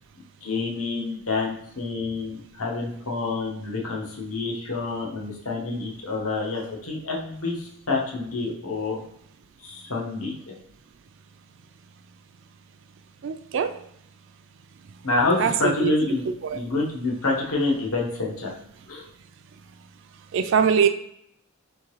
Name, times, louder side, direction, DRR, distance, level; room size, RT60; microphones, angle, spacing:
voice 1, 0.4-9.0 9.6-10.5 15.0-18.5 18.9-19.1, left 3 dB, 70° left, -2 dB, 1.1 m, -27 dB
voice 2, 13.2-13.8 15.4-15.9 16.3-16.6 20.3-20.9, right 7 dB, 55° right, 8 dB, 0.3 m, -22 dB
3.6 x 3.6 x 3.1 m, 0.76 s
head